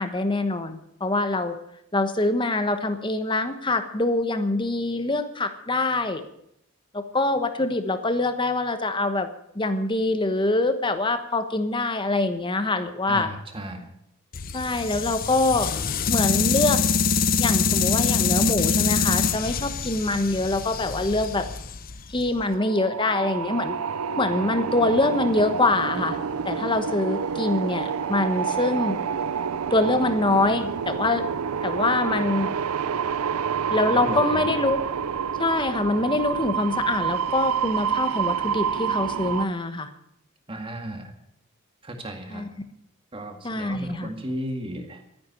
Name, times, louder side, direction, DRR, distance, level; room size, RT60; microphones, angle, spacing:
voice 1, 0.0-1.6 1.9-6.2 6.9-9.3 9.5-13.3 14.5-15.7 16.1-16.8 17.4-21.4 22.1-23.7 24.2-26.2 26.4-29.0 29.7-31.2 31.6-32.5 33.7-34.8 35.4-39.9 42.3-42.5 43.4-44.1, left 2 dB, 20° left, 9 dB, 1.2 m, -24 dB
voice 2, 13.1-13.9 34.0-34.5 40.5-41.1 41.8-42.5 43.1-45.0, right 1 dB, 25° right, 5 dB, 2.0 m, -34 dB
sound 1, 14.3-22.4, left 5 dB, 40° left, 0.7 m, -25 dB
sound 2, 22.4-39.5, right 7 dB, 90° right, 0.5 m, -28 dB
13.0 x 10.0 x 8.5 m, 0.75 s
head